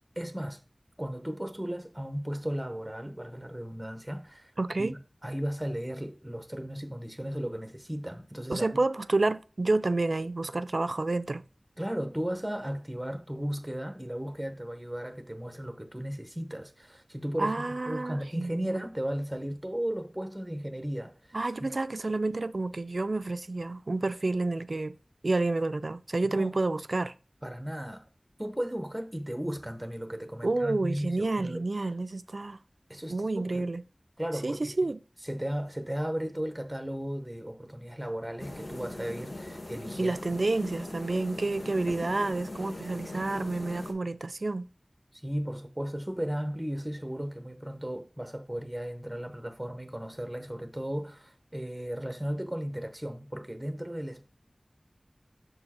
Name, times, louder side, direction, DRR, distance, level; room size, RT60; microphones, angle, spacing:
voice 1, 0.2-0.6 1.0-8.7 11.8-21.7 26.3-26.5 27.4-28.0 28.4-31.7 32.9-33.7 34.2-34.9 35.2-40.1 45.1-54.3, equal, 10° right, 0.9 m, -35 dB
voice 2, 4.6-4.9 8.5-11.4 17.4-18.8 21.3-25.0 25.2-27.1 30.4-32.6 33.1-33.8 34.4-35.0 40.0-44.7, right 2 dB, 75° right, 0.3 m, -29 dB
sound 1, 38.4-43.9, left 1 dB, 85° left, 1.0 m, -40 dB
6.6 x 4.4 x 4.3 m
wide cardioid pair, 50°, 0 cm